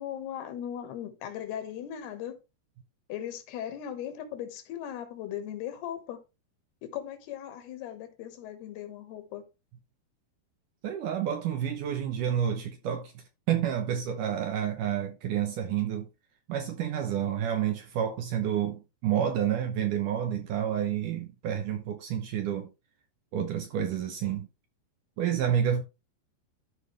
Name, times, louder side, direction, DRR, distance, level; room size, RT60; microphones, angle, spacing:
voice 1, 0.0-2.4 3.1-6.2 6.8-9.5, left 10 dB, 85° left, 3.2 m, -38 dB
voice 2, 10.8-13.1 13.5-16.1 16.5-22.7 23.3-24.5 25.2-25.8, right 9 dB, 75° right, 2.0 m, -29 dB
13.0 x 4.9 x 3.3 m
omnidirectional pair, 4.6 m